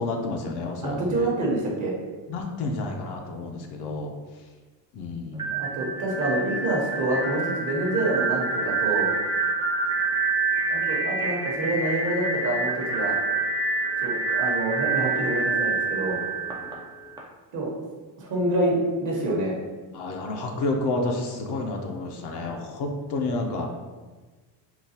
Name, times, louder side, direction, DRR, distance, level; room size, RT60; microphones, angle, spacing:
voice 1, 0.0-1.0 2.3-4.1 4.9-5.5 16.6-16.7 19.9-23.7, left 2 dB, 55° left, 2 dB, 0.6 m, -30 dB
voice 2, 0.8-1.9 5.5-9.1 10.7-13.2 14.0-16.2 17.5-17.7 18.2-19.6 22.4-22.5, right 2 dB, 40° right, -2 dB, 0.9 m, -27 dB
sound 1, 5.3-17.2, right 3 dB, 10° right, 0.3 m, -27 dB
3.9 x 2.2 x 2.7 m, 1.3 s
cardioid pair, 105°, 48 cm